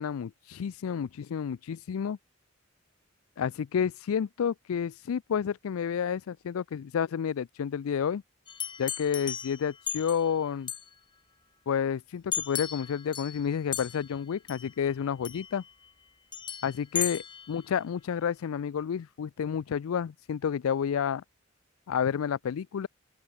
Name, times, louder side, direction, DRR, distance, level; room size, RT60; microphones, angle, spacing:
voice 1, 0.0-2.2 3.4-8.2 8.8-10.7 11.7-15.6 16.6-21.2 21.9-22.9, left 7 dB, 90° left, 0.4 m, -30 dB
sound 1, 8.5-10.3 10.7-10.9 12.3-13.5 13.7-14.2 14.5-14.7 15.2-15.7 16.3-17.6, left 8 dB, 20° left, 1.2 m, -36 dB
open air
head